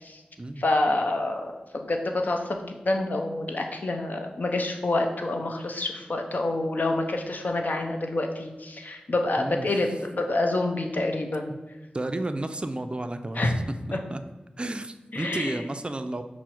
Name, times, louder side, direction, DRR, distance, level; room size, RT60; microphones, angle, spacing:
voice 1, 0.6-11.5 13.4-13.5 13.9-14.0 15.1-15.6, left 2 dB, 60° left, 4 dB, 0.6 m, -27 dB
voice 2, 9.4-9.7 11.5-11.6 11.9-13.5 14.1-14.2 14.6-16.2, right 2 dB, 30° right, 9 dB, 0.3 m, -32 dB
5.9 x 2.0 x 4.4 m, 1.1 s
cardioid pair, 40°, 3 cm